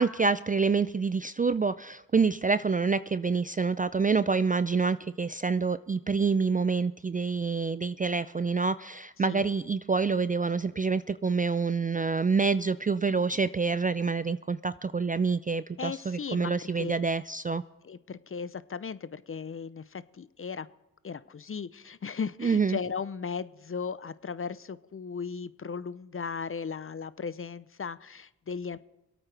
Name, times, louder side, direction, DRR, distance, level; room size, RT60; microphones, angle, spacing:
voice 1, 0.0-17.6 22.4-22.8, right 4 dB, 20° right, 14 dB, 0.4 m, -27 dB
voice 2, 15.8-17.0 17.8-20.7 21.0-28.8, left 6 dB, 30° left, 16 dB, 0.6 m, -36 dB
25.5 x 8.9 x 3.4 m, 0.93 s
supercardioid pair, 45°, 41 cm